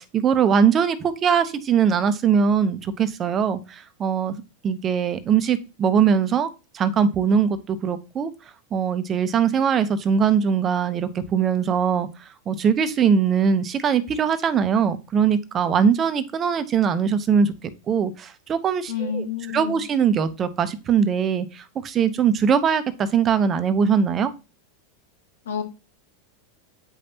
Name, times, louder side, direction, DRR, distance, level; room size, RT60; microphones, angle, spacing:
voice 1, 0.0-6.5 6.7-8.3 8.7-19.2 19.5-24.3, right 7 dB, 30° right, 12 dB, 0.8 m, -21 dB
voice 2, 18.9-19.8 25.4-25.6, left 7 dB, 85° left, 6 dB, 1.6 m, -29 dB
8.2 x 5.3 x 2.9 m, 0.28 s
hypercardioid pair, 115°, 0 cm